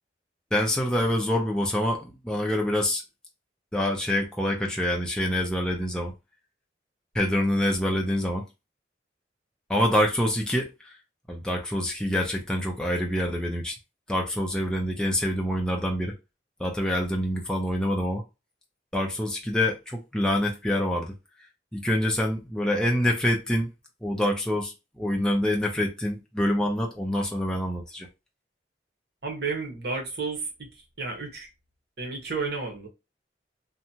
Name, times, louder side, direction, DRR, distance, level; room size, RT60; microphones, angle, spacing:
voice 1, 0.5-3.0 3.7-6.1 7.1-8.4 9.7-10.9 11.3-13.7 14.1-16.1 16.6-18.2 18.9-21.1 21.7-23.7 24.0-28.1, left 1 dB, 5° left, 0.4 m, -26 dB
voice 2, 29.2-30.5 31.0-31.5 32.0-32.9, right 4 dB, 60° right, 1.0 m, -31 dB
2.8 x 2.2 x 2.7 m
head